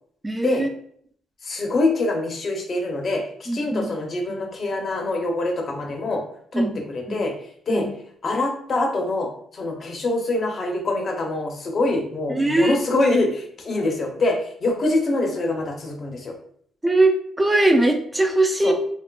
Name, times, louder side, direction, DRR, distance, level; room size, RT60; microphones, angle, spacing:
voice 1, 0.2-0.7 3.5-3.9 4.3-4.4 6.5-6.8 7.1-7.2 7.7-7.9 12.3-12.9 16.8-18.7, right 2 dB, 15° right, 3 dB, 0.3 m, -20 dB
voice 2, 1.4-6.2 6.5-7.3 7.7-7.9 8.2-16.3 18.6-18.7, left 2 dB, 45° left, 2 dB, 0.6 m, -24 dB
2.7 x 2.4 x 2.2 m, 0.63 s
cardioid pair, 90°, 0 cm